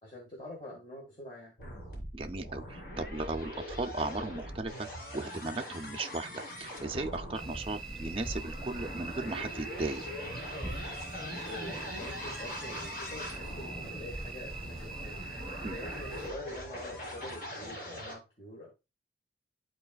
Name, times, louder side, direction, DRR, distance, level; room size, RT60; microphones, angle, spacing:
voice 1, 0.0-1.6 10.9-18.7, left 1 dB, 30° left, 1.7 m, -46 dB
sound 1, 1.6-18.2, left 1 dB, 50° left, 3.8 m, -42 dB
voice 2, 2.1-10.0 15.6-15.8, right 2 dB, 30° right, 0.4 m, -36 dB
sound 2, 7.3-16.3, right 3 dB, 5° left, 2.6 m, -42 dB
12.0 x 4.0 x 2.3 m
head